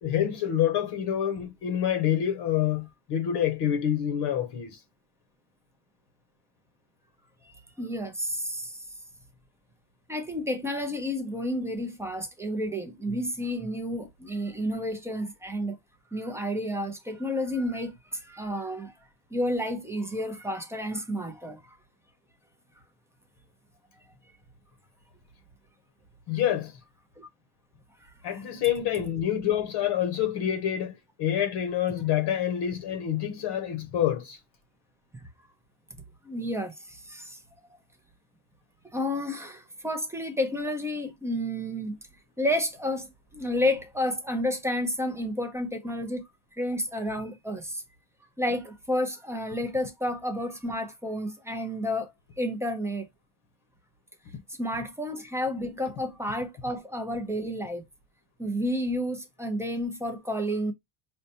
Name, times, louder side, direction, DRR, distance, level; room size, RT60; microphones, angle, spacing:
voice 1, 0.0-4.8 26.3-26.7 28.2-34.4, left 10 dB, 60° left, 0.8 m, -27 dB
voice 2, 7.5-8.8 10.1-15.8 16.1-18.9 19.3-21.6 27.2-27.3 28.0-28.4 36.2-37.4 37.7-37.8 38.9-42.0 42.4-46.2 46.6-47.8 48.4-52.1 52.4-53.1 54.6-57.8 58.4-60.7, left 1 dB, 5° right, 0.3 m, -31 dB
5.2 x 2.2 x 2.7 m
cardioid pair, 165°, 47 cm